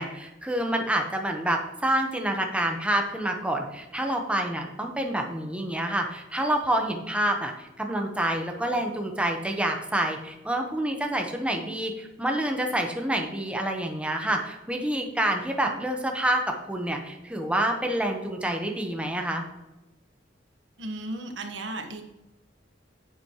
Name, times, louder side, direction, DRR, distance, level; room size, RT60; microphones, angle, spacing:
voice 1, 0.0-19.4, right 1 dB, 5° right, 2 dB, 1.0 m, -27 dB
voice 2, 20.8-22.0, right 2 dB, 75° right, 4 dB, 1.3 m, -35 dB
10.5 x 7.6 x 3.0 m, 1.0 s
head